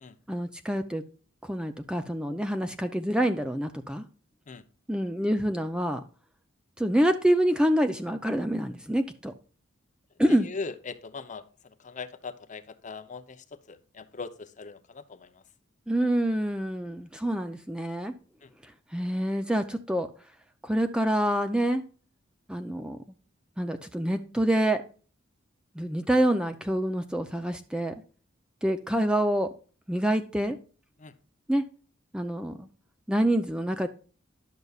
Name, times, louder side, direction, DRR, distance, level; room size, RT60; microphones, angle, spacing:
voice 1, 0.3-1.0 1.4-4.0 4.9-6.0 6.8-9.3 10.2-10.5 15.9-18.1 18.6-20.1 20.6-21.8 22.5-23.0 23.6-24.8 25.8-27.9 28.6-29.5 29.9-30.6 31.5-31.6 32.1-32.7 33.1-33.9, right 1 dB, 5° right, 7 dB, 0.4 m, -26 dB
voice 2, 10.4-11.4 11.8-15.3 18.4-18.5 31.0-31.1, left 4 dB, 40° left, 10 dB, 0.7 m, -40 dB
10.5 x 6.6 x 2.4 m, 0.39 s
head